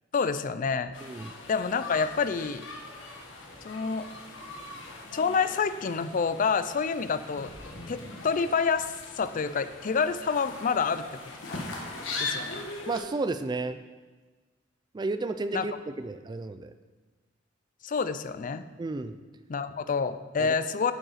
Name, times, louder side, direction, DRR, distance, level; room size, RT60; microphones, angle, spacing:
voice 1, 0.1-0.9 1.5-2.6 3.6-4.1 5.1-7.5 7.9-11.0 11.5-11.6 12.2-12.7 15.5-15.6 17.8-18.7 19.5-20.9, left 5 dB, 45° left, 12 dB, 0.4 m, -28 dB
sound 1, 0.9-13.0, left 3 dB, 80° left, 1.5 m, -40 dB
voice 2, 1.0-1.3 12.9-13.8 14.9-16.7 18.8-19.2 20.4-20.5, right 3 dB, 20° right, 11 dB, 0.3 m, -32 dB
9.6 x 5.3 x 5.7 m, 1.3 s
head